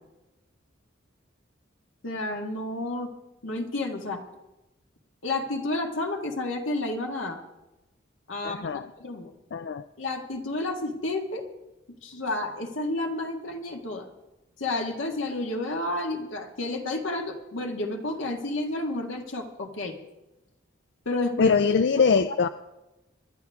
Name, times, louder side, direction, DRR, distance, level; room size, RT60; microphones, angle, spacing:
voice 1, 2.0-3.1 3.4-4.2 5.2-7.4 8.3-9.3 10.0-11.4 12.0-14.1 14.6-20.0 21.1-21.5, left 2 dB, 85° left, 3 dB, 1.8 m, -31 dB
voice 2, 8.4-8.9 9.5-9.8 21.4-22.5, left 5 dB, 60° left, 12 dB, 0.4 m, -22 dB
26.0 x 11.0 x 3.6 m, 1.0 s
head